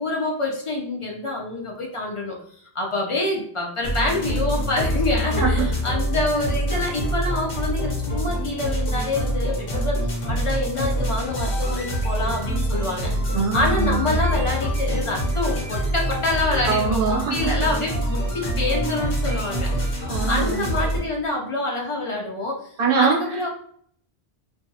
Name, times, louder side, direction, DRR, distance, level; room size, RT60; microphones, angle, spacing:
voice 1, 0.0-2.4 2.7-10.0 10.3-13.1 13.5-19.7 20.3-22.6 23.0-23.5, left 2 dB, 45° left, -1 dB, 0.4 m, -26 dB
sound 1, 3.8-21.0, equal, 65° left, 1.0 m, -25 dB
voice 2, 5.4-5.8 13.3-14.1 16.6-17.7 20.0-20.7 22.8-23.4, right 6 dB, 60° right, -2 dB, 0.9 m, -23 dB
2.7 x 2.3 x 2.6 m, 0.62 s
omnidirectional pair, 1.0 m